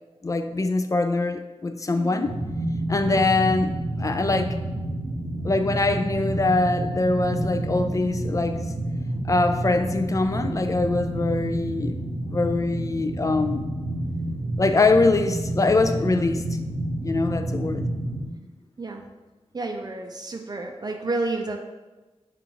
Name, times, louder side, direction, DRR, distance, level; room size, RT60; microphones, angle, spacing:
voice 1, 0.2-2.4 2.9-3.7 4.0-4.6 5.4-8.7 9.3-12.0 12.3-13.7 14.6-16.6 17.0-17.9, left 3 dB, 30° left, 8 dB, 0.3 m, -23 dB
voice 2, 1.9-2.4 3.1-3.4 18.8-19.1 19.5-21.6, right 2 dB, 40° right, 2 dB, 0.5 m, -31 dB
sound 1, 2.2-18.3, right 1 dB, 80° right, 0.7 m, -29 dB
5.4 x 2.5 x 2.8 m, 1.1 s
cardioid pair, 55°, 11 cm